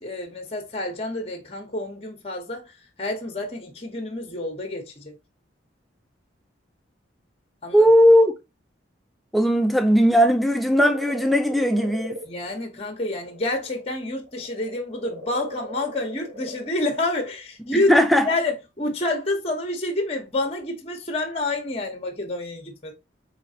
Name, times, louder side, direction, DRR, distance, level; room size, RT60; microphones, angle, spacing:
voice 1, 0.0-2.6 3.0-5.1 7.6-7.9 12.3-17.9 18.2-22.9, left 2 dB, 30° left, 0.9 m, -28 dB
voice 2, 7.7-8.3 9.3-12.2 17.7-18.3, equal, ahead, 0.4 m, -18 dB
sound 1, 10.3-13.9 14.2-16.8 17.8-17.9, left 1 dB, 65° right, 1.7 m, -38 dB
4.4 x 3.2 x 2.7 m
head